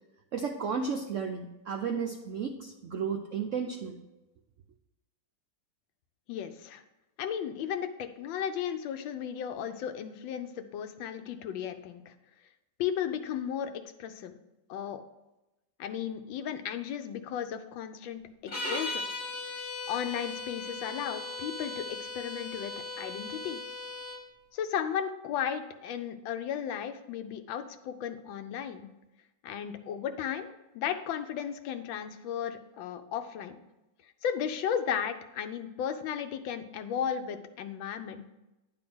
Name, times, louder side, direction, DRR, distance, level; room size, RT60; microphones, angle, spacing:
voice 1, 0.3-4.0, right 6 dB, 75° right, 3 dB, 0.7 m, -33 dB
voice 2, 6.3-6.8 7.2-12.1 12.8-13.7 14.0-14.4 14.7-15.0 15.8-19.0 19.9-23.6 24.5-28.9 29.4-33.6 34.2-38.2, left 8 dB, 85° left, 8 dB, 1.4 m, -35 dB
sound 1, 18.5-24.2, left 2 dB, 50° left, 1.7 m, -38 dB
10.5 x 3.7 x 6.1 m, 0.99 s
omnidirectional pair, 2.1 m